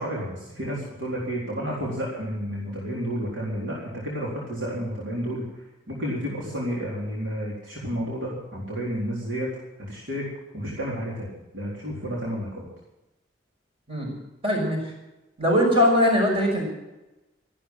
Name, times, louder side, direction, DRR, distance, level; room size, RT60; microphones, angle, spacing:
voice 1, 0.0-10.3 10.5-12.7, equal, 85° right, -5 dB, 4.1 m, -31 dB
voice 2, 14.4-14.8 15.4-16.6, left 1 dB, 30° right, -1 dB, 5.8 m, -21 dB
14.0 x 11.5 x 7.5 m, 1.0 s
head